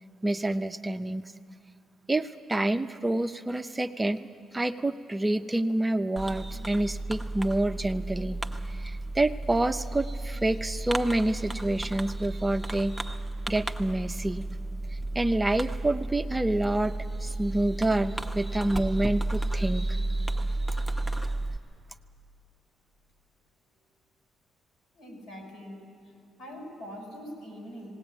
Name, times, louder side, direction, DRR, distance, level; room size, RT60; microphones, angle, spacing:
voice 1, 0.2-1.3 2.1-4.3 4.5-8.4 8.7-13.0 13.5-14.5 14.9-20.8, right 1 dB, 15° right, 8 dB, 0.5 m, -28 dB
Fireworks, 6.2-21.6, right 2 dB, ahead, 1.0 m, -33 dB
voice 2, 24.9-25.9 26.4-27.9, equal, 75° left, 1 dB, 6.1 m, -43 dB
18.5 x 18.5 x 9.2 m, 2.7 s
cardioid pair, 90°, 0 cm